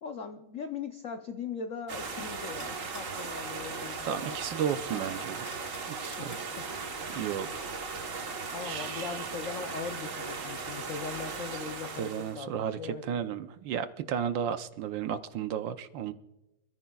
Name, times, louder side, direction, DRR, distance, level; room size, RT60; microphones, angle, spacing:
voice 1, 0.0-4.6 4.9-5.0 6.2-6.8 8.5-13.3, left 5 dB, 90° left, 6 dB, 0.7 m, -40 dB
sound 1, 1.4-12.5, left 4 dB, 40° left, 1.8 m, -57 dB
sound 2, 1.9-12.4, right 4 dB, 45° right, 1.3 m, -38 dB
voice 2, 4.0-5.5 5.9-6.5 7.1-7.6 8.6-9.2 12.0-16.1, right 8 dB, 70° right, 10 dB, 1.2 m, -34 dB
27.0 x 14.0 x 2.3 m, 0.98 s
omnidirectional pair, 2.4 m